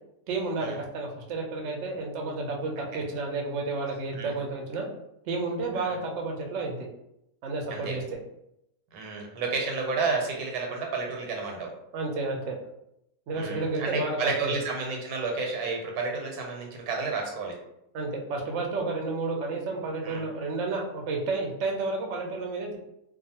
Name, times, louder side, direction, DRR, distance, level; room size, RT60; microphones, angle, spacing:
voice 1, 0.3-4.9 5.3-6.9 7.4-8.0 11.9-12.6 13.3-14.5 17.9-22.8, right 3 dB, 65° right, 1 dB, 0.8 m, -31 dB
voice 2, 8.9-11.7 13.3-17.6 20.0-20.2, right 4 dB, 85° right, 1 dB, 1.2 m, -31 dB
2.5 x 2.3 x 2.7 m, 0.81 s
omnidirectional pair, 1.6 m